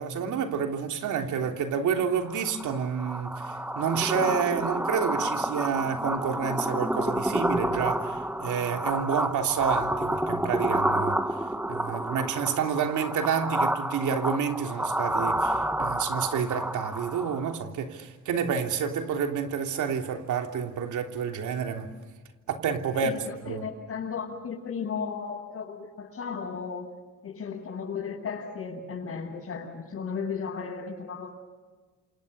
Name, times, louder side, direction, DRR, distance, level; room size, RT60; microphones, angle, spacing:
voice 1, 0.0-11.2 11.7-21.9 22.5-23.1 23.5-23.6, right 7 dB, 80° right, 3.3 m, -29 dB
sound 1, 2.2-17.6, right 1 dB, 5° right, 1.4 m, -29 dB
voice 2, 22.9-26.9 27.2-31.3, left 6 dB, 50° left, 7.7 m, -35 dB
29.0 x 27.5 x 6.8 m
cardioid pair, 90°, 30 cm